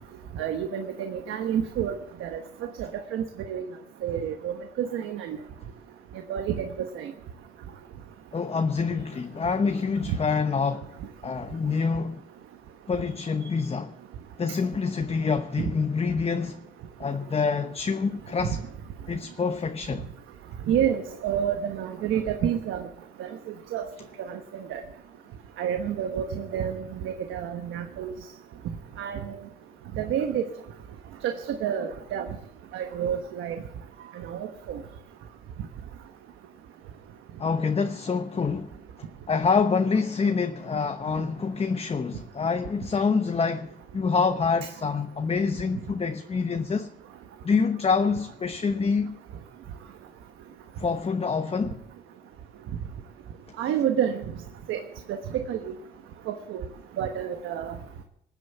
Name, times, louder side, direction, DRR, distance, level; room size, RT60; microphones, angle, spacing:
voice 1, 0.4-2.4 2.8-3.6 4.0-5.4 6.3-7.1 20.7-22.9 23.2-23.3 23.7-23.9 24.2-24.4 24.7-24.8 25.6-28.1 29.0-29.4 30.0-30.5 31.2-32.3 32.7-33.6 34.2-34.8 53.6-54.2 54.7-54.8 55.1-55.7 56.3-56.6 57.0-57.7, right 9 dB, 85° right, 1.2 m, -29 dB
voice 2, 8.3-10.9 11.2-12.2 12.9-13.9 14.4-16.6 17.0-18.6 19.1-20.1 37.4-38.7 39.3-46.9 47.4-49.2 50.8-51.8, left 5 dB, 30° left, 0.9 m, -26 dB
19.5 x 8.4 x 8.0 m
cardioid pair, 90°, 20 cm